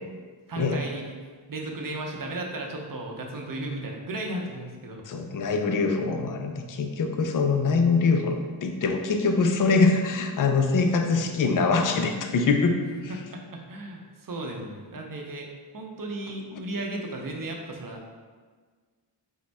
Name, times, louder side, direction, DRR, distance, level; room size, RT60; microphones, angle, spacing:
voice 1, 0.5-1.1 1.5-5.1 11.1-11.2 13.1-15.5 15.7-18.2, right 2 dB, 40° right, 1 dB, 0.7 m, -35 dB
voice 2, 5.1-12.8, left 4 dB, 40° left, 5 dB, 0.5 m, -23 dB
5.1 x 2.1 x 3.4 m, 1.5 s
cardioid pair, 50°, 50 cm